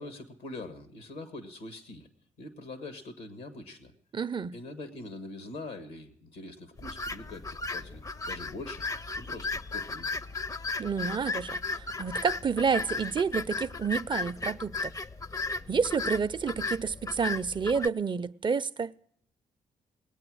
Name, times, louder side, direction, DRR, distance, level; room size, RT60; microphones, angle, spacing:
voice 1, 0.0-2.1 2.4-3.9 4.5-8.8 9.1-10.1, left 2 dB, 90° left, 1.5 m, -43 dB
voice 2, 4.1-4.5 10.8-14.9 15.7-18.9, right 5 dB, 35° right, 0.5 m, -29 dB
sound 1, 6.8-17.9, left 3 dB, 25° left, 0.5 m, -35 dB
19.5 x 8.7 x 6.2 m
supercardioid pair, 50°, 14 cm